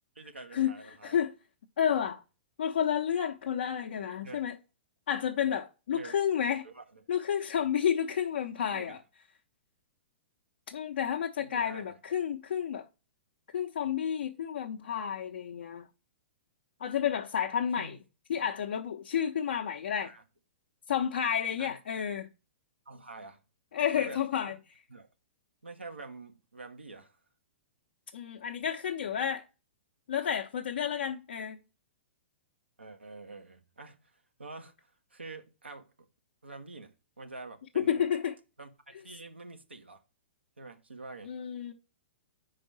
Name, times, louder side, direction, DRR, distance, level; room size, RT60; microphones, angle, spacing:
voice 1, 0.1-1.2 4.2-4.4 5.9-6.2 6.6-7.0 8.7-9.0 11.4-11.9 17.8-18.0 20.0-20.2 21.6-21.8 22.9-23.4 23.9-24.6 24.9-25.1 25.6-27.2 32.8-36.1 36.4-38.1 38.6-40.0 40.6-41.3, right 3 dB, 85° right, 1.2 m, -47 dB
voice 2, 1.0-1.3 1.8-2.2 2.6-4.6 5.1-6.7 7.1-9.0 10.7-12.9 13.5-15.9 16.8-18.0 18.3-20.1 20.9-22.3 23.7-24.5 28.1-29.4 30.1-31.6 37.8-38.4 41.2-41.7, left 8 dB, 60° left, 0.8 m, -30 dB
5.2 x 4.9 x 6.0 m
figure-of-eight pair, 110°, 6 cm